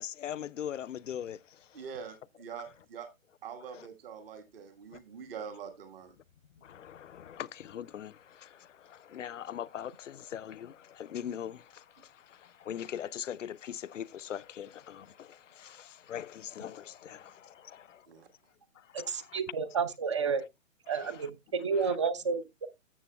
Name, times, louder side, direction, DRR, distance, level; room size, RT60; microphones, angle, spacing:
voice 1, 0.0-1.8 3.7-3.9 4.9-5.0 6.6-18.1 18.8-19.4 20.9-21.3 21.8-22.0, left 9 dB, 65° left, 0.5 m, -42 dB
voice 2, 1.7-3.1 3.4-6.1 18.1-18.3, right 7 dB, 45° right, 1.5 m, -44 dB
voice 3, 18.9-20.4 20.9-22.7, right 5 dB, 25° right, 0.4 m, -31 dB
13.0 x 7.2 x 2.2 m
figure-of-eight pair, 130°, 41 cm